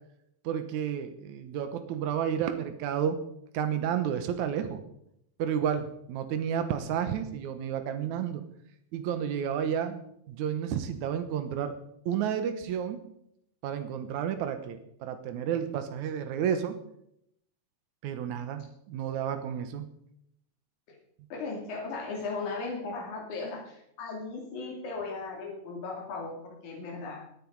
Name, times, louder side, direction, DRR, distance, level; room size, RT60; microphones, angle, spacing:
voice 1, 0.4-3.2 3.5-4.8 5.4-8.4 8.9-10.0 10.3-11.8 12.1-13.0 13.6-16.8 18.0-19.9, right 8 dB, 80° right, 8 dB, 2.5 m, -31 dB
voice 2, 21.3-27.3, left 3 dB, 85° left, 0 dB, 3.8 m, -37 dB
19.0 x 9.4 x 4.7 m, 0.75 s
omnidirectional pair, 3.3 m